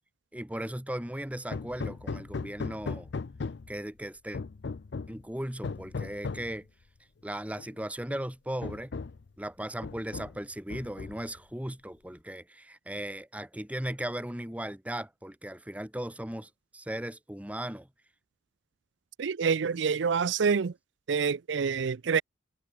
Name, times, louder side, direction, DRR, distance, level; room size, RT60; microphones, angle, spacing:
voice 1, 0.3-3.1 3.7-4.4 5.1-6.7 7.2-8.9 9.4-17.9, right 1 dB, 5° right, 1.1 m, -37 dB
Hammer, 1.5-3.8 4.3-5.2 5.6-6.6 7.6-7.7 8.1-8.2 8.6-9.3 9.8-10.4 10.7-11.4, left 4 dB, 60° left, 0.5 m, -37 dB
voice 2, 19.2-20.7 21.1-22.2, right 6 dB, 70° right, 0.5 m, -27 dB
head